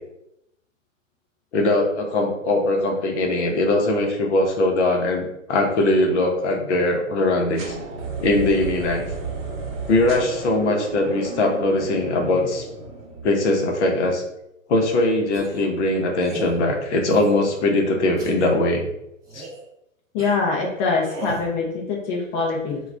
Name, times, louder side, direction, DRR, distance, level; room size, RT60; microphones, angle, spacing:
voice 1, 1.5-7.8 8.2-9.1 9.9-12.7 13.2-14.2 14.7-18.9 19.3-19.4, left 2 dB, 60° left, 2 dB, 0.8 m, -21 dB
sound 1, 7.6-13.5, right 4 dB, 45° right, 0.9 m, -33 dB
sound 2, 15.3-15.7 16.2-16.6 17.1-17.6 18.2-18.5 19.2-19.6 20.2-20.4 21.0-21.5, right 3 dB, 10° right, 0.9 m, -36 dB
voice 2, 20.1-22.8, left 4 dB, 30° left, -1 dB, 0.5 m, -24 dB
2.4 x 2.3 x 3.2 m, 0.83 s
hypercardioid pair, 125°, 40 cm